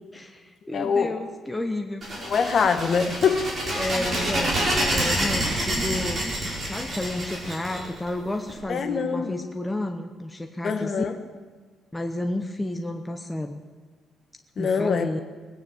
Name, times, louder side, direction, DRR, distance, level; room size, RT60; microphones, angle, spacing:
voice 1, 0.1-2.3 3.7-6.3 6.6-11.1 11.9-13.6 14.6-15.2, left 1 dB, 10° left, 4 dB, 0.7 m, -31 dB
voice 2, 0.7-1.2 2.2-3.5 8.7-9.4 10.6-11.1 14.6-15.1, left 5 dB, 40° left, 6 dB, 1.4 m, -24 dB
sound 1, 2.0-8.5, right 1 dB, 25° right, 4.9 m, -27 dB
19.5 x 9.5 x 7.2 m, 1.5 s
cardioid pair, 155°, 0 cm